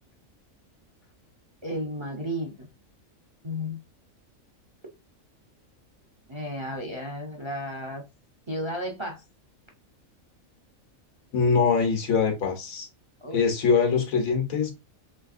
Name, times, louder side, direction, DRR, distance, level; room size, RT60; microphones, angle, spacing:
voice 1, 1.6-2.5 3.4-3.8 6.3-8.0 8.5-9.2 13.2-13.4, equal, 30° right, 0.5 m, -33 dB
voice 2, 11.3-12.9 13.3-14.7, left 5 dB, 85° left, 1.5 m, -23 dB
3.3 x 3.3 x 2.4 m
omnidirectional pair, 1.4 m